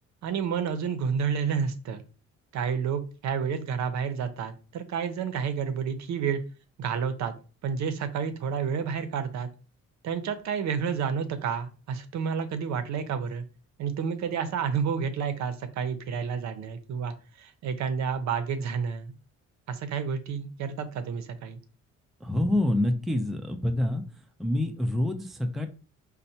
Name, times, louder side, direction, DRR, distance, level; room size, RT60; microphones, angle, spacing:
voice 1, 0.2-2.0 2.5-6.4 6.8-7.3 7.6-9.5 10.0-13.4 13.8-19.1 19.7-21.6, right 6 dB, 65° right, 10 dB, 0.6 m, -30 dB
voice 2, 22.2-25.7, left 1 dB, ahead, 5 dB, 0.4 m, -27 dB
4.2 x 2.1 x 2.7 m, 0.35 s
cardioid pair, 90°, 30 cm